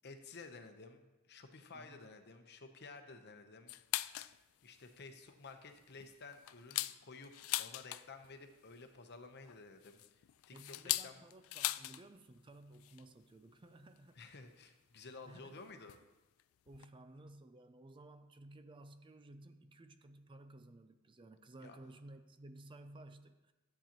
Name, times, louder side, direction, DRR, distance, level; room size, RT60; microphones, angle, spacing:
voice 1, 0.0-4.2 4.6-7.3 7.6-11.2 14.2-16.0 21.6-21.8, left 3 dB, 50° left, 6 dB, 0.8 m, -53 dB
voice 2, 1.7-2.1 10.5-14.2 15.3-15.7 16.7-23.5, right 2 dB, 25° right, 9 dB, 0.4 m, -56 dB
sound 1, 3.7-4.4 4.8-4.9 5.3-5.5 6.0-8.3 9.5-12.0 12.3-12.4 12.7-13.0 14.0-14.1 15.0-15.1 15.9-16.1 16.4-16.5 16.7-16.9, left 17 dB, 70° left, 0.3 m, -39 dB
13.0 x 8.7 x 2.9 m, 1.1 s
head